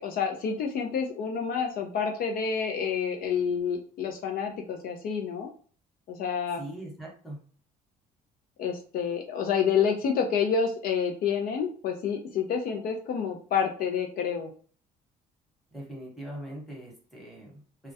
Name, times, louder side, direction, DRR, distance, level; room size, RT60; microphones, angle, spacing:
voice 1, 0.0-5.5 6.1-6.6 8.6-14.5, left 6 dB, 60° left, 3 dB, 0.4 m, -28 dB
voice 2, 6.5-7.4 15.7-17.9, right 1 dB, ahead, -3 dB, 1.0 m, -41 dB
2.2 x 2.1 x 2.7 m, 0.44 s
cardioid pair, 110°, 17 cm